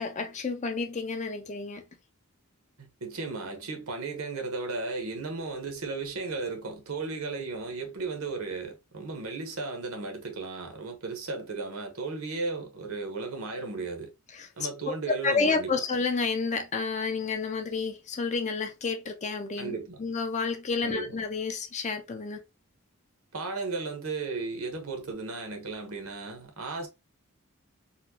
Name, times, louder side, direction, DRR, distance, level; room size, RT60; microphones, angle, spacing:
voice 1, 0.0-1.8 14.3-14.5 14.9-22.4, left 4 dB, 30° left, 0.5 m, -30 dB
voice 2, 2.8-14.1 14.6-15.7 19.6-20.0 20.8-21.2 23.3-26.9, right 3 dB, 70° right, 1.1 m, -35 dB
4.2 x 2.2 x 2.7 m
head